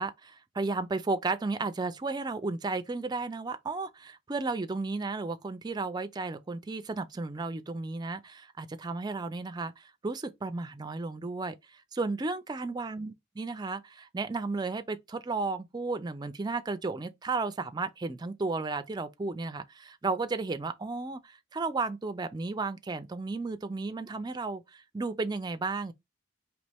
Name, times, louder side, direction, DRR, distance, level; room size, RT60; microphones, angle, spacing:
voice 1, 0.0-25.9, right 3 dB, 20° right, 0.4 m, -34 dB
4.1 x 3.0 x 3.4 m
head